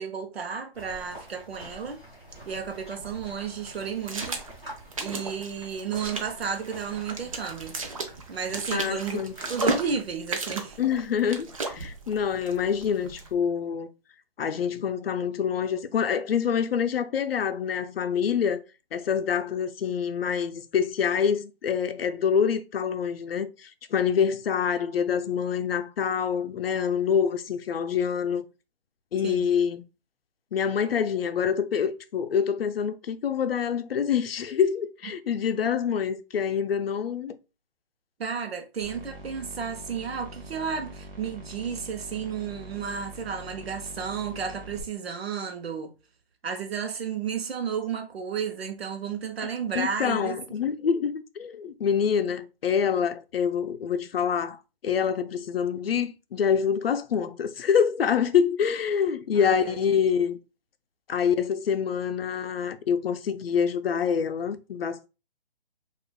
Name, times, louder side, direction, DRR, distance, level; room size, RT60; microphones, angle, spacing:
voice 1, 0.0-2.0 2.5-4.4 5.0-7.8 8.3-9.2 9.5-10.8 29.2-29.4 38.2-45.9 46.4-50.4 59.3-59.8, right 6 dB, 80° right, 0.8 m, -32 dB
sound 1, 0.7-9.9, right 1 dB, 5° right, 0.8 m, -47 dB
sound 2, 2.3-13.3, right 3 dB, 35° right, 0.5 m, -36 dB
voice 2, 8.7-9.3 10.8-13.9 14.4-18.6 18.9-28.5 29.1-29.8 30.5-37.4 49.7-60.4 61.1-65.1, left 7 dB, 75° left, 0.5 m, -26 dB
sound 3, 38.8-44.8, equal, 50° right, 1.1 m, -43 dB
5.0 x 2.5 x 2.2 m
hypercardioid pair, 170°, 30 cm